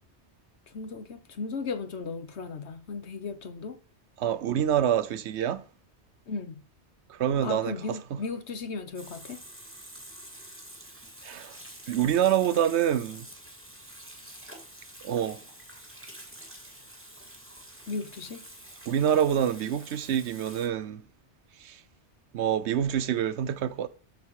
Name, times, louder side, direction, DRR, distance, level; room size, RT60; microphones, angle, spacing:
voice 1, 0.7-3.8 6.3-6.6 7.4-9.4 17.9-18.5, left 4 dB, 75° left, 1.4 m, -36 dB
voice 2, 4.2-5.6 7.1-7.7 11.2-11.6 11.9-13.3 15.0-15.4 18.9-21.0 21.6-21.8 22.3-23.9, right 9 dB, 75° right, 0.9 m, -26 dB
Water tap faucet / Sink (filling or washing), 9.0-20.7, right 1 dB, 10° right, 2.1 m, -47 dB
13.0 x 4.3 x 4.8 m
omnidirectional pair, 1.2 m